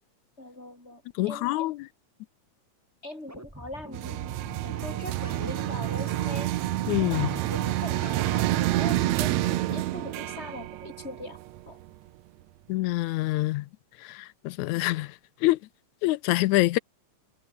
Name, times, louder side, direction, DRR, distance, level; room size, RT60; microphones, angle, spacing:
voice 1, 0.4-1.8 3.0-6.5 7.0-11.4 11.7-11.8, left 1 dB, 20° left, 6.0 m, -41 dB
voice 2, 1.2-1.7 6.9-7.3 12.7-13.7 14.5-15.1 15.4-15.6 16.0-16.8, left 18 dB, 85° left, 2.0 m, -25 dB
sound 1, 3.3-9.1, right 1 dB, 5° right, 2.6 m, -45 dB
sound 2, 3.9-11.9, right 15 dB, 75° right, 2.0 m, -28 dB
omnidirectional pair, 3.3 m